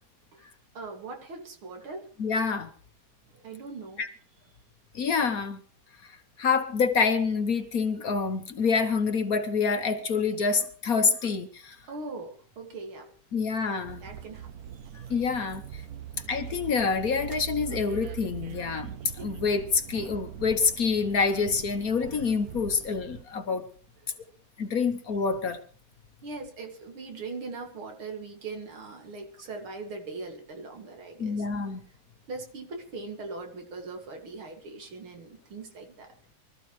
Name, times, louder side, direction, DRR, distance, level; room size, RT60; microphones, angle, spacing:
voice 1, 0.7-2.1 3.3-4.0 11.9-13.1 14.0-14.5 26.2-31.5 32.3-36.1, right 3 dB, 90° right, 3 dB, 3.2 m, -40 dB
voice 2, 2.2-2.7 4.0-4.1 4.9-5.6 6.0-11.8 13.3-14.0 15.1-15.8 16.3-18.9 19.2-23.7 24.6-25.6 31.2-31.8, left 5 dB, 50° left, 8 dB, 1.3 m, -27 dB
sound 1, 13.9-23.2, right 10 dB, 60° right, 1.1 m, -42 dB
24.5 x 13.5 x 3.2 m, 0.43 s
omnidirectional pair, 2.2 m